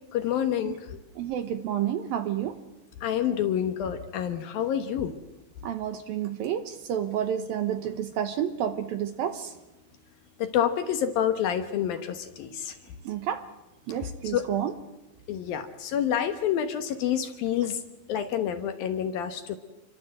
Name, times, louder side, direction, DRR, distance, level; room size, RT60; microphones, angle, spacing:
voice 1, 0.1-1.0 3.0-5.2 10.4-12.8 14.0-14.5 15.3-17.8 18.1-19.6, left 9 dB, 65° left, 8 dB, 2.7 m, -28 dB
voice 2, 1.2-2.6 5.6-9.5 13.1-13.4 13.9-14.7, right 10 dB, 70° right, 9 dB, 2.4 m, -30 dB
28.0 x 23.0 x 7.8 m, 1.0 s
omnidirectional pair, 5.1 m